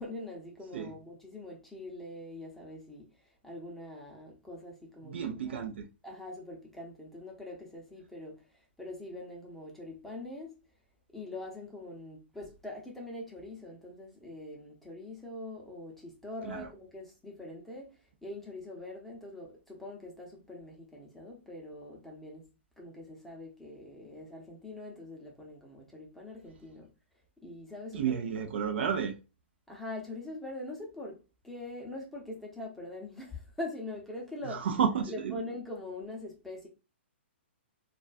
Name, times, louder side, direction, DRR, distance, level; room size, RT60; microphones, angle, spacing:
voice 1, 0.0-5.6 6.0-10.5 11.1-22.5 22.8-26.9 27.4-28.5 29.7-31.2 31.4-34.7 35.1-36.7, left 2 dB, 5° left, 0.7 m, -43 dB
voice 2, 5.0-5.9 16.4-16.7 27.9-29.2 34.5-35.4, right 7 dB, 65° right, 0.5 m, -31 dB
2.3 x 2.3 x 2.4 m
hypercardioid pair, 130°, 6 cm